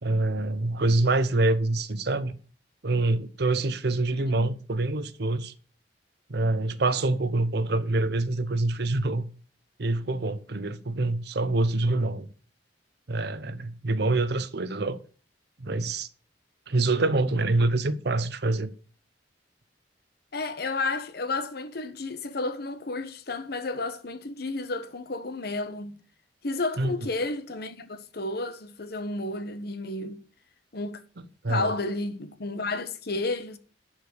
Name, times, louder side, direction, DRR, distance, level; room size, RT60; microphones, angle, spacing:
voice 1, 0.0-2.3 2.8-5.5 6.3-9.3 9.8-12.3 13.1-15.0 15.6-16.1 16.7-18.7 26.8-27.1 31.4-31.7, right 2 dB, 60° right, 0.8 m, -26 dB
voice 2, 4.2-4.5 20.3-25.9 26.4-30.2 30.7-31.0 31.5-33.6, left 2 dB, 60° left, 1.1 m, -32 dB
11.0 x 4.9 x 6.7 m
head